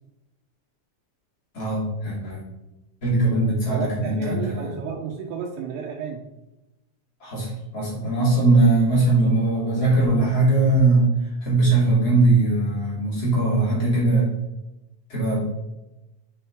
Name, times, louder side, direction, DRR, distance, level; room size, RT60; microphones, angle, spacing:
voice 1, 1.5-2.4 3.0-4.7 7.2-11.1 11.4-14.3 15.1-15.5, right 2 dB, 30° left, -6 dB, 2.1 m, -20 dB
voice 2, 3.7-6.2, right 6 dB, 85° right, -1 dB, 3.5 m, -32 dB
9.1 x 5.6 x 3.6 m, 0.97 s
omnidirectional pair, 5.7 m